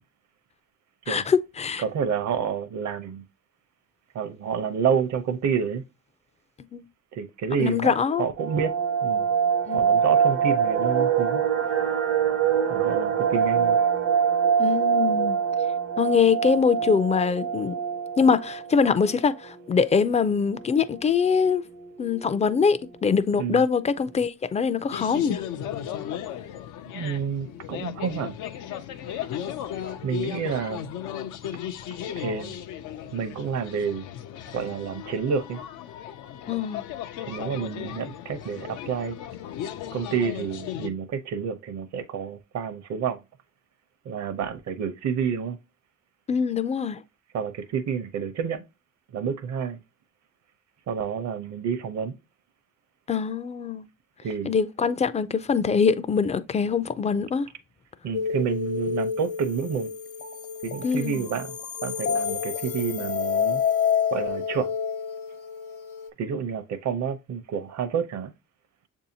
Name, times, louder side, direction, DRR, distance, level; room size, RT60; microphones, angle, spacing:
voice 1, 1.1-1.8 6.7-6.8 7.6-8.3 9.7-9.8 14.6-15.4 16.0-17.8 18.2-21.6 22.0-25.4 36.5-36.8 46.3-47.0 53.1-53.9 54.5-57.5 60.8-61.2, left 6 dB, 25° left, 0.3 m, -23 dB
voice 2, 1.8-3.2 4.1-5.8 7.1-8.7 9.0-9.3 9.7-11.4 12.7-13.8 23.3-23.6 26.9-28.4 30.0-30.9 32.2-32.6 33.1-34.0 34.5-35.6 37.3-39.2 39.9-43.2 44.0-45.6 47.3-48.6 49.1-49.8 50.9-52.2 54.2-54.5 58.0-59.9 60.6-61.5 61.8-63.6 64.1-64.7 66.2-68.3, right 7 dB, 65° right, 0.7 m, -29 dB
sound 1, 8.4-19.2 19.5-19.6 19.9-20.1 20.5-21.0 21.5-21.6 21.8-22.3 22.6-22.7, right 7 dB, 90° right, 0.9 m, -24 dB
sound 2, 24.9-40.9, left 10 dB, 85° left, 0.5 m, -36 dB
sound 3, 58.1-66.1, left 7 dB, 50° left, 0.7 m, -29 dB
6.8 x 2.7 x 2.7 m
cardioid pair, 70°, 30 cm